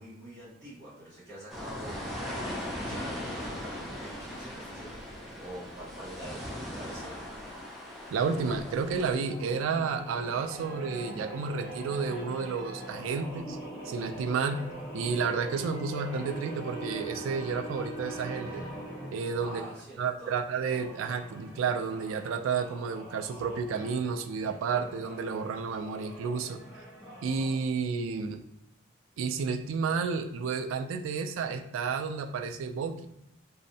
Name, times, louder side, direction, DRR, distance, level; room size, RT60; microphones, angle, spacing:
voice 1, 0.0-5.1 5.4-7.1 19.4-20.3, right 1 dB, 65° right, -11 dB, 1.1 m, -46 dB
sound 1, 1.5-9.1, left 1 dB, ahead, 0.3 m, -39 dB
voice 2, 8.1-13.6 13.9-14.6 14.9-18.6 19.1-19.6 20.0-26.6 27.2-28.4 29.2-33.1, right 5 dB, 85° right, 7 dB, 0.3 m, -31 dB
sound 2, 8.2-19.8 20.5-27.6, right 1 dB, 20° right, 1.4 m, -43 dB
2.6 x 2.0 x 2.7 m, 0.85 s
head